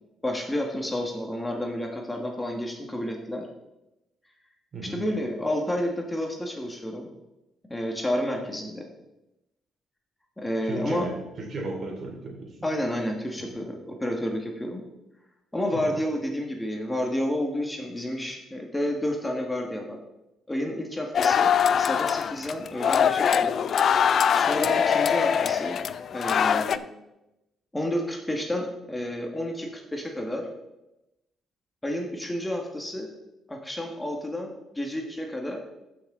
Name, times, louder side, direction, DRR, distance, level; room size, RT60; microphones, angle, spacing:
voice 1, 0.2-3.5 4.9-7.1 7.7-8.8 10.4-11.1 12.6-14.8 15.5-20.0 20.5-23.5 24.3-25.8 26.1-26.8 27.7-30.5 31.8-33.1 33.5-35.6, left 1 dB, 10° left, 1 dB, 1.4 m, -30 dB
voice 2, 4.7-5.0 10.6-12.6 13.4-13.5 15.7-15.9, right 2 dB, 50° right, 0 dB, 3.0 m, -35 dB
sound 1, 21.1-26.8, left 7 dB, 60° left, 0.4 m, -23 dB
14.0 x 6.0 x 3.7 m, 0.94 s
cardioid pair, 90°, 0 cm